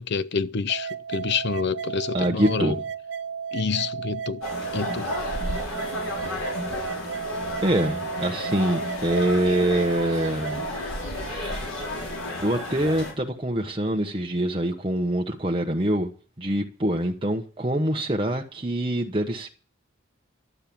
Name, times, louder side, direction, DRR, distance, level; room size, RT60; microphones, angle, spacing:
voice 1, 0.0-2.8 3.5-4.4 4.7-5.1, left 5 dB, 55° left, 0.6 m, -28 dB
sound 1, 0.7-10.7, right 7 dB, 60° right, 0.6 m, -34 dB
voice 2, 2.1-2.8 7.6-10.6 11.1-11.7 12.4-16.1 16.4-19.5, right 1 dB, 25° right, 1.2 m, -25 dB
sound 2, 4.4-13.1, left 1 dB, 90° left, 5.4 m, -32 dB
12.5 x 7.6 x 8.6 m
head